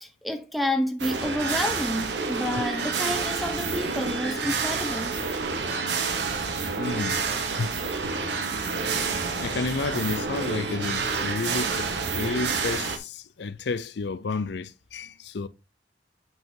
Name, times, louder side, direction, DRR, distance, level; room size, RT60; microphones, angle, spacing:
voice 1, 0.0-5.2, left 1 dB, ahead, 0.8 m, -29 dB
sound 1, 1.0-13.0, right 4 dB, 75° right, 1.1 m, -28 dB
voice 2, 6.8-7.2 7.6-7.7 9.4-15.5, left 4 dB, 75° left, 0.5 m, -31 dB
8.0 x 5.4 x 2.7 m
head